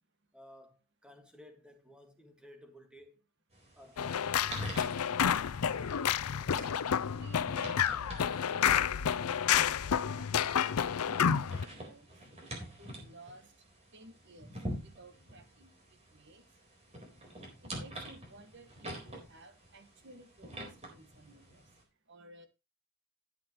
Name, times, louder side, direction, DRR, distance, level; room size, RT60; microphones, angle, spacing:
voice 1, 0.3-3.2 3.8-4.5, equal, 5° right, 1.7 m, -56 dB
sound 1, 3.5-21.8, right 1 dB, 30° right, 4.1 m, -47 dB
sound 2, 4.0-11.6, left 8 dB, 85° left, 0.5 m, -30 dB
voice 2, 6.5-9.5 9.8-12.1 12.8-13.5 13.9-15.7 16.1-16.4 17.6-21.6 22.1-22.5, right 1 dB, 50° right, 1.8 m, -56 dB
sound 3, 10.3-10.7, left 5 dB, 30° left, 3.2 m, -56 dB
12.5 x 9.4 x 3.1 m
head